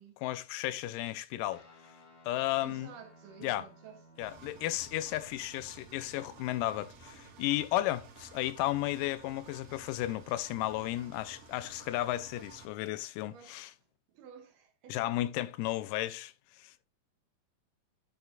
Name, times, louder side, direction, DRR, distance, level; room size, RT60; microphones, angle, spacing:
voice 1, 0.2-1.6 2.3-2.9 3.4-3.6 4.2-13.7 14.9-16.7, left 15 dB, 85° left, 2.2 m, -34 dB
Guitar, 1.5-9.1, equal, 45° left, 2.5 m, -61 dB
voice 2, 2.6-4.3 13.3-13.6 14.1-15.1, right 7 dB, 75° right, 2.9 m, -52 dB
Engine, 4.2-12.6, right 4 dB, 60° right, 1.8 m, -53 dB
10.5 x 6.8 x 2.3 m
omnidirectional pair, 3.8 m